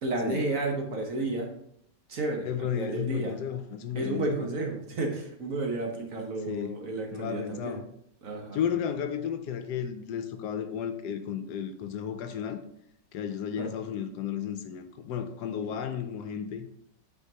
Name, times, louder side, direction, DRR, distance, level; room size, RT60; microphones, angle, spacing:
voice 1, 0.0-1.5 2.1-3.3 3.9-7.8 8.2-8.6 13.6-13.7, right 2 dB, 55° right, 1 dB, 1.2 m, -32 dB
voice 2, 2.5-4.5 6.5-6.8 7.1-7.8 8.5-12.6 13.1-16.7, left 8 dB, 75° left, 8 dB, 1.1 m, -33 dB
8.2 x 4.6 x 2.8 m, 0.72 s
omnidirectional pair, 1.9 m